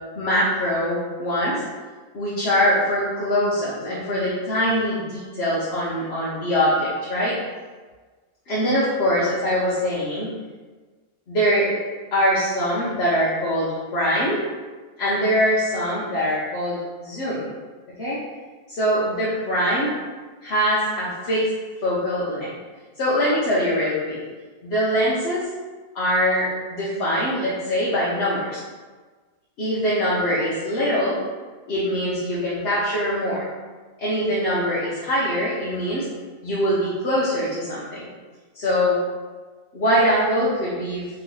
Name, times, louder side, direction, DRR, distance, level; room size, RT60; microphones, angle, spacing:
voice 1, 0.2-1.5 2.1-7.3 8.5-10.3 11.3-11.8 12.1-14.4 15.0-17.5 18.0-18.2 18.7-19.9 20.4-21.5 21.8-22.5 23.0-24.2 24.6-25.4 25.9-28.6 29.6-31.2 31.7-33.4 34.0-36.1 36.4-38.1 38.5-39.0 39.7-41.0, equal, 50° left, -8 dB, 0.9 m, -23 dB
3.3 x 3.1 x 3.8 m, 1.4 s
omnidirectional pair, 1.5 m